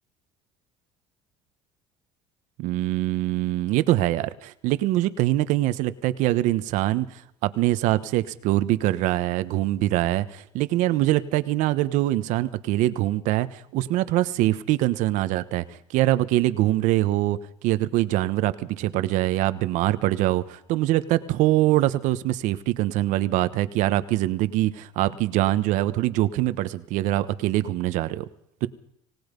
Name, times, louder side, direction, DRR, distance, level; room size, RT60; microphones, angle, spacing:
voice 1, 2.6-28.2 28.6-28.7, right 15 dB, 70° right, 14 dB, 1.2 m, -23 dB
27.0 x 18.5 x 5.3 m, 0.73 s
cardioid pair, 150°, 13 cm